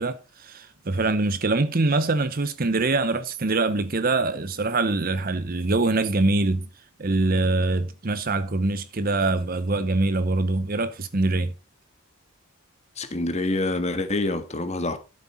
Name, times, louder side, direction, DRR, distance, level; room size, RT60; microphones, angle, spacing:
voice 1, 0.0-6.7 7.0-11.5, right 2 dB, 40° right, 0.7 m, -24 dB
voice 2, 13.0-15.0, left 2 dB, 30° left, 1.4 m, -26 dB
13.0 x 7.6 x 4.3 m
head